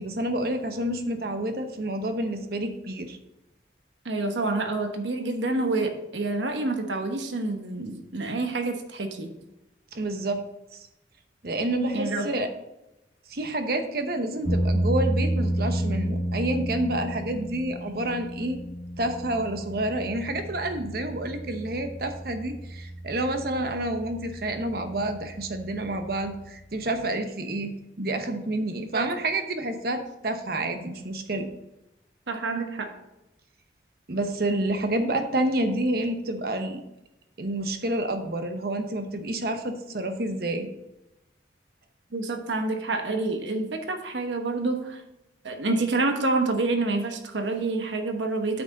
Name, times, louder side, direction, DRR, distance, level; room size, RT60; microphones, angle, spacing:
voice 1, 0.0-3.2 9.9-10.4 10.7-10.9 11.4-12.5 13.3-18.6 19.0-31.5 34.1-36.8 37.4-40.7, right 1 dB, 55° right, 7 dB, 0.9 m, -29 dB
voice 2, 4.0-9.3 11.9-12.3 28.9-29.1 32.3-32.9 42.1-45.0 45.4-48.6, right 3 dB, 85° right, 5 dB, 1.1 m, -28 dB
sound 1, 14.4-27.0, right 1 dB, 20° left, 3.2 m, -31 dB
8.6 x 6.2 x 4.0 m, 0.91 s
head